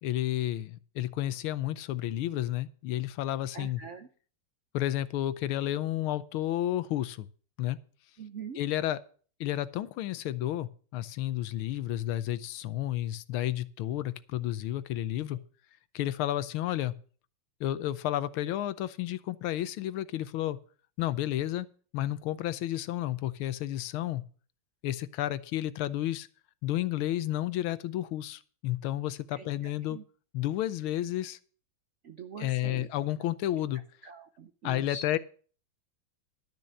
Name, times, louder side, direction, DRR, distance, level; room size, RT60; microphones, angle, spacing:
voice 1, 0.0-3.8 4.7-7.3 7.6-7.8 8.5-9.0 9.4-15.4 15.9-17.0 17.6-20.6 21.0-21.7 21.9-24.2 24.8-26.3 26.6-30.0 30.3-31.4 32.4-33.8 34.6-35.2, left 13 dB, 80° left, 15 dB, 1.6 m, -31 dB
voice 2, 3.5-4.1 8.2-8.6 29.3-29.5 29.9-30.0 32.0-32.9 34.0-35.0, right 4 dB, 75° right, 8 dB, 0.6 m, -43 dB
12.0 x 6.7 x 6.5 m, 0.43 s
omnidirectional pair, 2.3 m